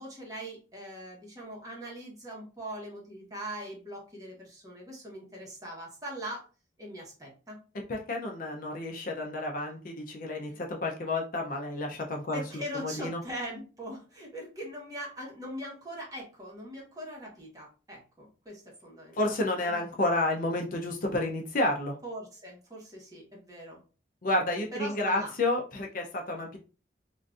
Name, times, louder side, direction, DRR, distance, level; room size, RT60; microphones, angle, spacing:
voice 1, 0.0-6.4 6.8-7.6 10.5-10.6 12.3-19.4 19.6-19.8 22.0-23.8 24.7-25.3, equal, 20° right, -3 dB, 1.2 m, -41 dB
voice 2, 7.9-12.4 12.7-13.2 19.2-22.0 24.2-26.6, left 2 dB, 45° left, 2 dB, 0.5 m, -30 dB
3.7 x 2.5 x 2.4 m, 0.35 s
head